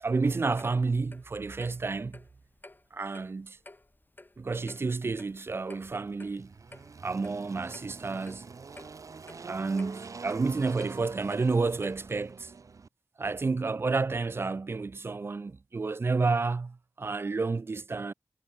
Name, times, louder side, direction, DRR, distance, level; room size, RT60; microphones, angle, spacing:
voice 1, 0.0-2.2 2.9-3.6 4.4-6.5 7.0-8.5 9.4-12.5 13.2-18.1, right 4 dB, 45° right, 0.3 m, -30 dB
Clock, 0.6-12.3, left 2 dB, 35° left, 3.7 m, -54 dB
Engine, 5.5-12.9, right 4 dB, 80° right, 1.7 m, -46 dB
cardioid pair, 40°, 6 cm